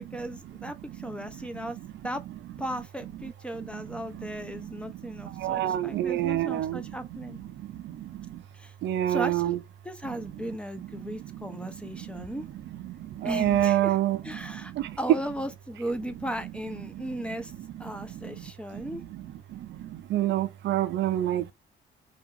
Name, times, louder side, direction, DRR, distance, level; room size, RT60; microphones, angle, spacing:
voice 1, 0.0-1.8 2.0-2.2 2.6-7.4 8.5-8.7 9.1-9.6 9.8-12.5 13.2-14.0 14.2-14.7 15.0-17.5 17.8-19.0, equal, 5° left, 0.4 m, -36 dB
voice 2, 5.4-6.8 8.8-9.6 13.2-14.2 20.1-21.5, right 13 dB, 65° right, 0.4 m, -26 dB
2.8 x 2.4 x 2.6 m
cardioid pair, 90°, 20 cm